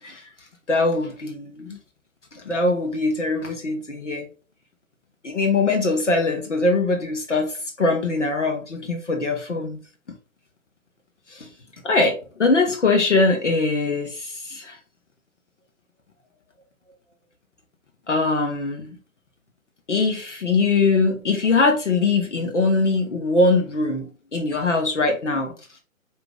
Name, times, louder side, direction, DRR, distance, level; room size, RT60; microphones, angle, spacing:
voice 1, 0.7-1.8 2.3-4.3 5.2-9.8 11.3-11.5 11.8-14.8 18.1-19.0 19.9-25.5, left 3 dB, 60° left, 2 dB, 1.0 m, -22 dB
4.5 x 2.9 x 3.6 m, 0.36 s
figure-of-eight pair, 140°, 42 cm